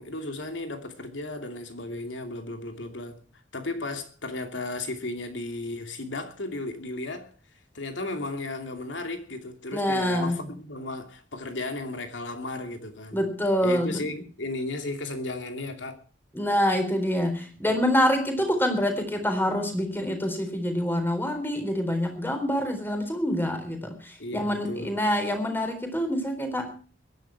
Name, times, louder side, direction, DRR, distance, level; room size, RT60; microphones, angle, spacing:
voice 1, 0.0-3.2 3.5-7.3 7.7-13.2 13.6-16.0 24.2-25.0, left 2 dB, 80° left, 2.7 m, -34 dB
voice 2, 9.7-10.5 13.1-14.0 16.3-26.7, equal, 10° left, 4.0 m, -26 dB
22.0 x 10.5 x 4.7 m
head